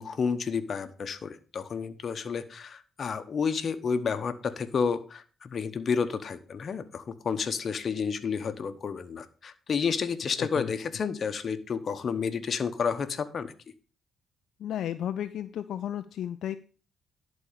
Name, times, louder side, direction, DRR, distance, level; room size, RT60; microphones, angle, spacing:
voice 1, 0.0-13.5, left 6 dB, 55° left, 10 dB, 1.1 m, -30 dB
voice 2, 10.4-10.7 14.6-16.6, left 10 dB, 75° left, 10 dB, 0.4 m, -33 dB
11.0 x 4.4 x 6.7 m, 0.38 s
cardioid pair, 80°, 0 cm